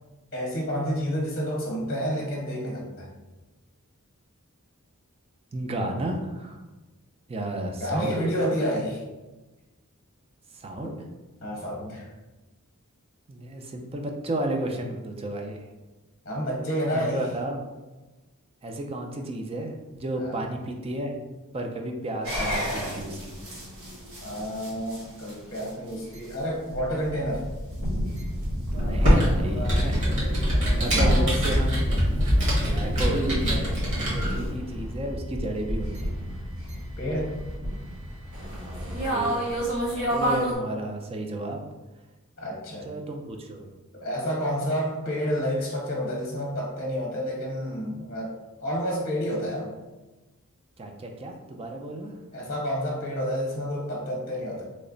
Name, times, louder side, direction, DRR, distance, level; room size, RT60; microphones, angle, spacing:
voice 1, 0.3-3.1 7.8-9.0 10.8-10.9 11.4-12.0 16.2-17.3 20.2-20.4 24.2-27.4 30.9-31.3 37.0-37.4 42.4-42.9 43.9-48.3 48.6-49.7 52.3-54.6, equal, 45° left, -4 dB, 0.8 m, -29 dB
voice 2, 5.5-6.6 7.3-8.3 10.5-11.0 13.3-15.7 16.9-17.6 18.6-21.1 21.5-23.4 28.7-30.0 30.3-30.5 30.8-32.0 32.6-36.2 38.5-39.4 40.1-41.7 42.8-43.7 50.8-52.1, right 1 dB, 25° right, 3 dB, 0.4 m, -32 dB
sound 1, 22.2-40.5, equal, 80° right, 1.1 m, -31 dB
Computer keyboard, 28.7-34.5, equal, 60° right, 1.3 m, -24 dB
3.1 x 2.0 x 3.8 m, 1.1 s
head